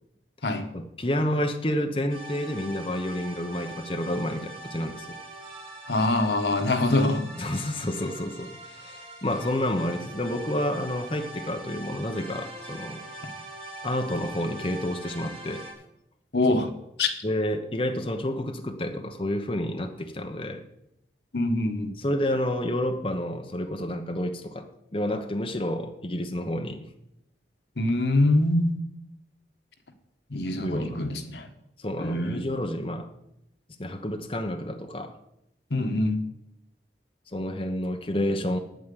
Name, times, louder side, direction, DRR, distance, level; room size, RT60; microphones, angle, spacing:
voice 1, 0.7-5.1 7.4-13.0 13.8-15.6 17.2-20.6 22.0-24.6 24.9-26.8 30.6-31.0 31.8-33.1 33.8-35.2 37.3-38.6, left 1 dB, 30° left, 5 dB, 1.0 m, -29 dB
sound 1, 2.1-15.7, right 2 dB, 30° right, 3.1 m, -42 dB
voice 2, 5.9-7.3 16.3-16.7 17.0-17.1 21.3-21.9 27.8-28.8 30.3-31.5 32.0-32.5 35.7-36.2, left 2 dB, 80° left, 7 dB, 1.4 m, -24 dB
9.4 x 9.2 x 8.3 m, 0.81 s
head